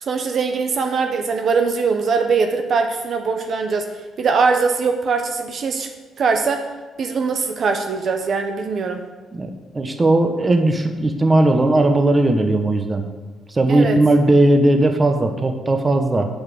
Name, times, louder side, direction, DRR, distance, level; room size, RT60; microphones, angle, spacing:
voice 1, 0.0-3.9 4.2-5.9 6.2-6.6 7.0-9.0 13.7-14.0, right 5 dB, 55° right, 5 dB, 1.0 m, -21 dB
voice 2, 9.3-13.0 13.5-16.3, right 2 dB, 25° right, 5 dB, 1.3 m, -17 dB
8.7 x 6.3 x 7.7 m, 1.3 s
cardioid pair, 90°, 0 cm